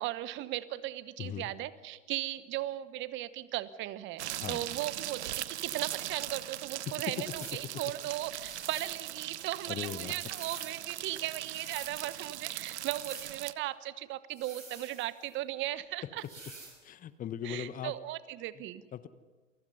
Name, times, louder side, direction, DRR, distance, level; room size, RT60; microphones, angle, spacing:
voice 1, 0.0-16.2 17.4-18.8, right 15 dB, 30° right, 16 dB, 1.1 m, -37 dB
voice 2, 1.2-1.5 4.4-4.7 9.7-10.2 16.8-18.0 18.5-18.6 18.9-19.1, left 9 dB, 20° left, 15 dB, 1.0 m, -39 dB
sound 1, 4.2-13.5, right 13 dB, 60° right, 0.9 m, -40 dB
sound 2, 7.1-7.7 8.3-9.0 9.9-10.8 11.3-12.0 12.7-13.3 14.3-15.3 16.2-16.8, right 3 dB, 85° right, 6.6 m, -48 dB
28.5 x 23.5 x 5.6 m, 1.3 s
figure-of-eight pair, 100°, 38 cm